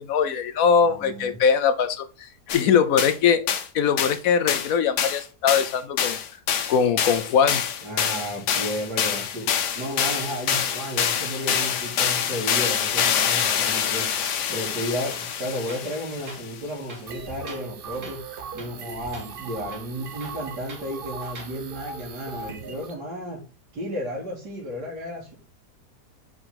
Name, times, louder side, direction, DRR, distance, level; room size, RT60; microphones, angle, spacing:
voice 1, 0.0-3.4 3.7-6.2 6.7-7.6, left 7 dB, 65° left, 11 dB, 1.0 m, -21 dB
voice 2, 0.9-1.4 7.8-9.5 9.8-18.2 18.5-23.4 23.7-25.3, equal, 80° right, -5 dB, 2.5 m, -33 dB
sound 1, 2.5-2.6 3.0-3.2 3.5-3.7 4.0-4.2 4.5-4.7 5.0-16.5, left 8 dB, 85° left, 1.4 m, -26 dB
Tools, 15.1-15.3 15.7-16.0 16.3-16.4 16.9-17.7 18.0-18.3 18.6-18.9 19.1-19.3 19.7-20.9 21.3-21.6, right 3 dB, 65° right, 2.3 m, -43 dB
sound 2, 17.1-22.9, right 5 dB, 50° right, 0.7 m, -39 dB
4.9 x 4.8 x 5.8 m, 0.33 s
omnidirectional pair, 1.8 m